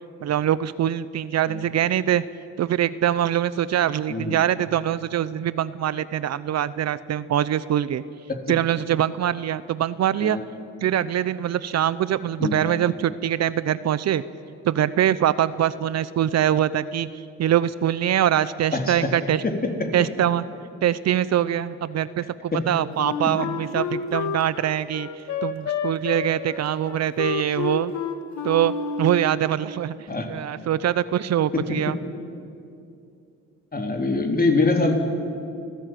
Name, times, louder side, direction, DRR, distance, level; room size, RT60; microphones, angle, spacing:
voice 1, 0.2-2.2 2.6-8.0 8.5-10.4 10.8-14.2 14.6-17.1 17.4-19.4 19.9-20.4 20.8-25.1 25.4-27.9 28.4-29.9 30.3-32.0, right 11 dB, 60° right, 16 dB, 0.7 m, -23 dB
voice 2, 18.7-19.2 19.4-19.9 22.5-22.7 30.1-30.3 31.5-31.9 33.7-34.9, left 3 dB, 30° left, 4 dB, 3.6 m, -24 dB
Wind instrument woodwind instrument, 23.0-29.3, left 6 dB, 70° left, 2.1 m, -29 dB
28.5 x 15.0 x 9.2 m, 2.6 s
cardioid pair, 90°, 30 cm